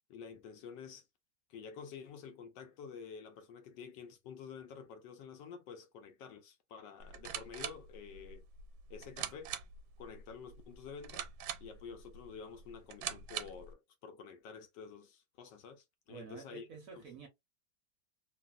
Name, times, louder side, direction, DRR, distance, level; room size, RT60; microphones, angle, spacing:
voice 1, 0.1-1.1 1.5-8.4 8.9-9.6 10.0-11.2 11.6-17.0, left 6 dB, 75° left, 1.1 m, -49 dB
sound 1, 7.0-13.7, right 9 dB, 90° right, 1.4 m, -44 dB
voice 2, 16.1-17.3, right 5 dB, 60° right, 0.9 m, -50 dB
3.0 x 2.6 x 2.2 m
omnidirectional pair, 2.1 m